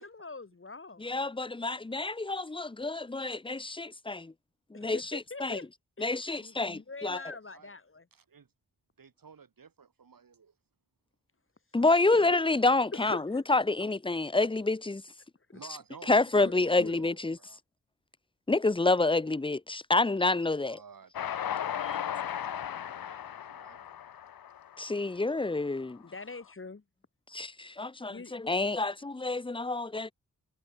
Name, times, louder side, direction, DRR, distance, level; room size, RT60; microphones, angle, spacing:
voice 1, 0.0-1.1 4.7-5.7 6.0-8.1 12.1-12.4 12.9-13.4 16.4-16.5 16.8-17.0 21.8-22.1 26.0-26.8 28.1-28.4, left 3 dB, 35° left, 2.6 m, -44 dB
voice 2, 1.0-4.3 4.7-5.6 6.0-7.2 11.7-15.0 16.1-17.4 18.5-20.8 24.8-26.0 27.3-30.1, left 3 dB, 15° left, 0.8 m, -28 dB
voice 3, 7.4-7.8 8.1-8.5 9.0-10.5 15.5-17.6 20.6-21.1 21.4-23.9, right 6 dB, 70° right, 7.1 m, -54 dB
Train, 21.1-25.5, left 9 dB, 85° left, 1.0 m, -36 dB
wide cardioid pair, 95°, 35 cm